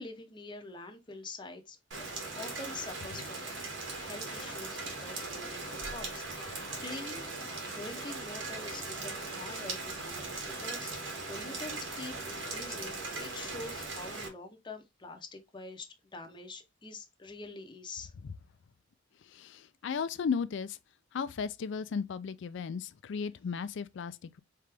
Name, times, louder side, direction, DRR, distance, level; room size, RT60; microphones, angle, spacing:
voice 1, 0.0-1.8 2.4-3.4 3.9-6.5 6.8-18.1, left 2 dB, 25° left, 0.6 m, -45 dB
Rain, 1.9-14.3, right 3 dB, 70° right, 1.6 m, -39 dB
voice 2, 19.3-20.8 21.1-24.4, left 6 dB, 65° left, 0.4 m, -35 dB
3.8 x 3.4 x 3.3 m
head